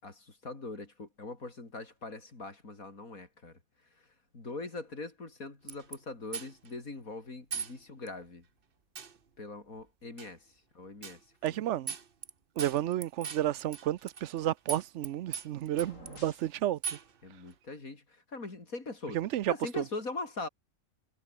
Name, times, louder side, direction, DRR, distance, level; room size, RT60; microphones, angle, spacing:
voice 1, 0.0-3.6 4.3-8.4 9.4-10.4 10.7-11.6 17.2-19.2 19.5-20.5, left 3 dB, 85° left, 4.6 m, -42 dB
sound 1, 5.7-6.0 6.3-6.7 7.5-7.7 8.1-8.2 9.0-9.2 10.2-10.3 11.0-11.2 11.5-11.6 11.9-12.3 12.6-14.4 14.7-15.1 15.3-16.2 16.8-17.1, right 6 dB, 45° right, 1.3 m, -38 dB
voice 2, 11.4-11.9 12.6-16.8 19.1-19.8, right 12 dB, 65° right, 0.9 m, -31 dB
sound 2, 15.6-16.6, left 3 dB, 65° left, 4.6 m, -52 dB
omnidirectional pair, 1.4 m